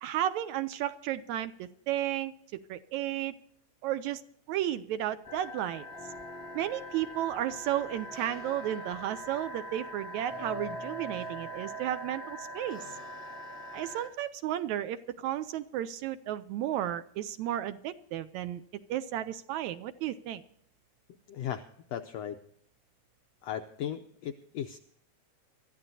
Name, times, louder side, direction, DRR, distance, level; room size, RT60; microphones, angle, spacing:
voice 1, 0.0-3.3 3.8-4.2 4.5-5.9 6.5-12.8 13.7-18.6 18.9-20.4, right 12 dB, 75° right, 12 dB, 1.8 m, -33 dB
sound 1, 5.2-14.1, equal, 20° left, 2.0 m, -42 dB
voice 2, 21.3-22.4 23.4-24.8, left 9 dB, 80° left, 7 dB, 1.5 m, -37 dB
23.5 x 13.5 x 2.7 m, 0.68 s
omnidirectional pair, 3.6 m